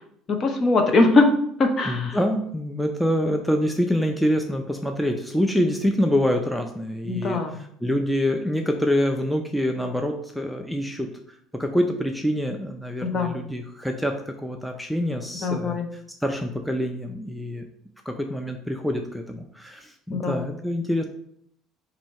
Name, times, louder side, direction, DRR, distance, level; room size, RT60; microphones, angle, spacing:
voice 1, 0.3-1.3 1.6-2.2 7.0-7.6 13.0-13.4 15.4-15.9 20.1-20.5, left 3 dB, 40° left, 4 dB, 0.8 m, -21 dB
voice 2, 1.9-7.4 7.8-11.1 11.5-17.7 18.1-21.0, equal, ahead, 3 dB, 0.4 m, -26 dB
4.4 x 2.7 x 4.3 m, 0.69 s
cardioid pair, 110°, 0 cm